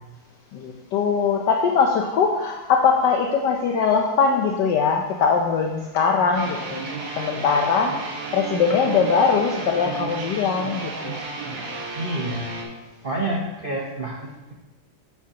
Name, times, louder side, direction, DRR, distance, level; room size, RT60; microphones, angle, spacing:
voice 1, 0.5-6.8 7.2-7.9 8.3-11.2, left 5 dB, 70° left, 2 dB, 1.2 m, -21 dB
sound 1, 6.3-12.6, right 3 dB, 65° right, 2.1 m, -33 dB
voice 2, 12.0-12.5 13.0-14.5, right 1 dB, 80° right, -2 dB, 0.4 m, -28 dB
9.2 x 8.2 x 2.9 m, 1.1 s
omnidirectional pair, 2.3 m